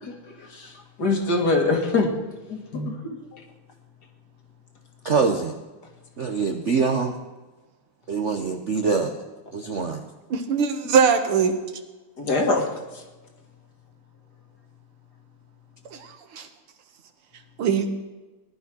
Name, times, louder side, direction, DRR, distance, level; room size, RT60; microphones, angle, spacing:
voice 1, 0.0-0.7 1.0-2.1 2.5-3.4 12.2-12.6 12.9-13.0, left 3 dB, 50° left, 2 dB, 2.4 m, -24 dB
voice 2, 5.0-5.5 6.2-7.2 8.1-9.1 9.5-10.0, right 5 dB, 50° right, 4 dB, 0.9 m, -24 dB
voice 3, 10.3-11.5 15.9-16.5 17.6-17.9, right 6 dB, 90° right, 7 dB, 2.3 m, -21 dB
18.0 x 11.0 x 6.2 m, 1.2 s
omnidirectional pair, 2.3 m